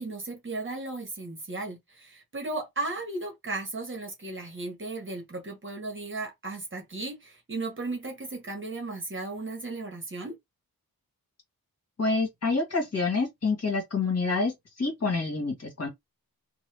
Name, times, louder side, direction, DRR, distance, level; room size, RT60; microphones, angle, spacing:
voice 1, 0.0-10.3, right 2 dB, 35° right, 1.1 m, -35 dB
voice 2, 12.0-14.5 14.8-15.9, left 3 dB, 45° left, 1.6 m, -27 dB
3.0 x 2.3 x 3.3 m
wide cardioid pair, 155°, 36 cm